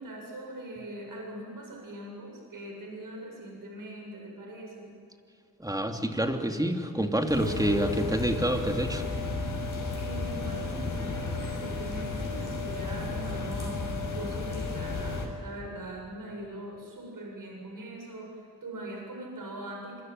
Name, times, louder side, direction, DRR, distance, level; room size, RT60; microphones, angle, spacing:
voice 1, 0.0-4.9 9.9-18.3 18.6-20.0, right 1 dB, 60° right, 0 dB, 7.8 m, -41 dB
voice 2, 5.6-9.0, right 1 dB, 10° right, 4 dB, 2.7 m, -27 dB
sound 1, 7.3-15.3, left 3 dB, 55° left, 6.0 m, -33 dB
26.0 x 24.5 x 9.3 m, 2.7 s
cardioid pair, 85°, 37 cm